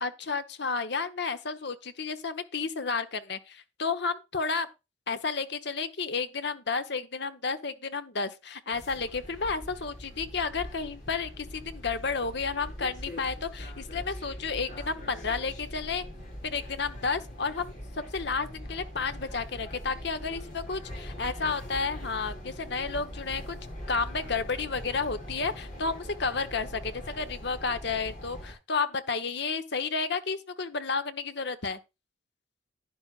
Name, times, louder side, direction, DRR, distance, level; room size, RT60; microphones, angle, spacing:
voice 1, 0.0-4.7 5.1-16.0 16.4-17.7 18.1-23.6 23.9-31.8, left 4 dB, 55° left, 1.0 m, -31 dB
sound 1, 8.7-28.5, equal, 40° left, 4.8 m, -42 dB
11.5 x 9.7 x 2.5 m
head